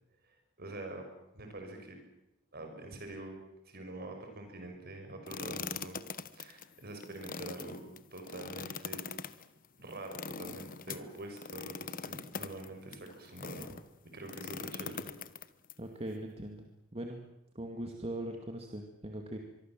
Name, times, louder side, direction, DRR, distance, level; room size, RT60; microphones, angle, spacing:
voice 1, 0.6-1.1 1.3-2.0 2.5-6.0 6.3-7.8 8.1-9.0 9.8-13.8 14.0-15.1, right 2 dB, 50° right, 4 dB, 6.3 m, -45 dB
sound 1, 5.3-13.8 14.3-15.7, left 6 dB, 40° left, 1.1 m, -42 dB
voice 2, 15.8-17.2 17.5-19.4, right 1 dB, 30° right, 3 dB, 2.2 m, -40 dB
24.5 x 23.5 x 7.7 m, 0.88 s
head